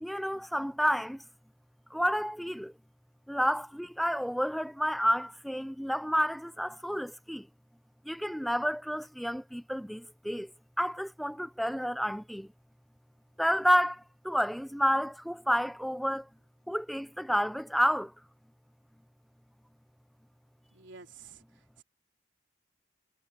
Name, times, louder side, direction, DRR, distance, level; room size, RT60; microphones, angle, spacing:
voice 1, 0.0-1.2 1.9-2.7 3.3-7.4 8.1-10.5 10.8-12.5 13.4-16.2 16.7-18.1, equal, ahead, 0.8 m, -30 dB
voice 2, 20.7-21.8, right 5 dB, 75° right, 3.7 m, -51 dB
head